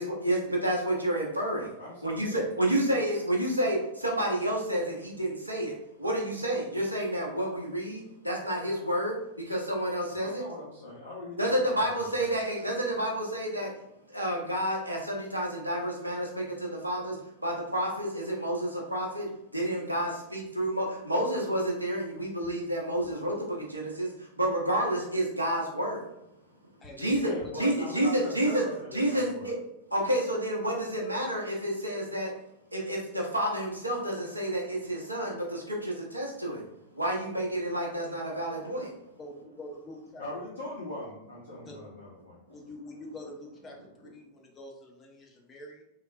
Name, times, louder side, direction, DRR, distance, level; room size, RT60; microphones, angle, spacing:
voice 1, 0.0-1.7 2.0-10.4 11.4-13.7 14.1-17.2 17.4-26.1 27.0-28.6 28.9-29.5 29.9-32.3 32.7-36.6 37.0-38.9, right 1 dB, 85° right, -1 dB, 0.7 m, -30 dB
voice 2, 1.8-2.4 2.8-2.9 10.1-12.4 27.2-29.5 40.2-42.4, left 1 dB, 65° left, -7 dB, 1.0 m, -41 dB
sound 1, 22.4-22.5 23.0-23.1 24.1-24.2 24.5-24.6 25.0-25.1 26.8-27.5 28.0-28.1 28.5-28.8 29.7-29.8 29.9-30.0, equal, 55° right, 1.0 m, -48 dB
voice 3, 26.8-27.5 39.2-40.2 41.6-41.7 42.5-43.8 44.1-45.8, left 1 dB, 25° left, -1 dB, 0.8 m, -45 dB
3.4 x 2.8 x 2.4 m, 0.82 s
figure-of-eight pair, 90°, 0 cm